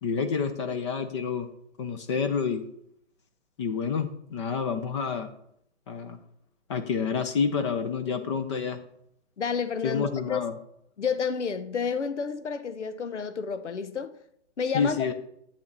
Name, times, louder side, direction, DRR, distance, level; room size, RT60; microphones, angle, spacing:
voice 1, 0.0-1.5 1.8-2.6 3.6-5.3 5.9-6.2 6.7-8.8 9.8-10.5 14.7-15.1, left 6 dB, 25° left, 0.8 m, -28 dB
voice 2, 9.4-10.5 11.0-14.1 14.6-15.0, left 6 dB, 75° left, 1.1 m, -30 dB
11.5 x 8.8 x 4.1 m
figure-of-eight pair, 145°, 35 cm